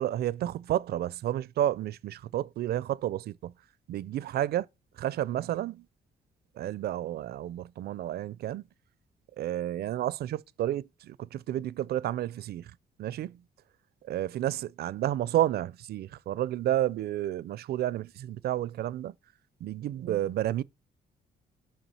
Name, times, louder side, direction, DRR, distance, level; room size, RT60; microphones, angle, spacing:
voice 1, 0.0-3.5 3.9-4.7 5.0-5.9 6.6-8.6 9.4-13.4 14.1-19.1 19.6-20.6, right 12 dB, 70° right, 0.4 m, -31 dB
5.8 x 4.8 x 5.5 m
cardioid pair, 90°, 17 cm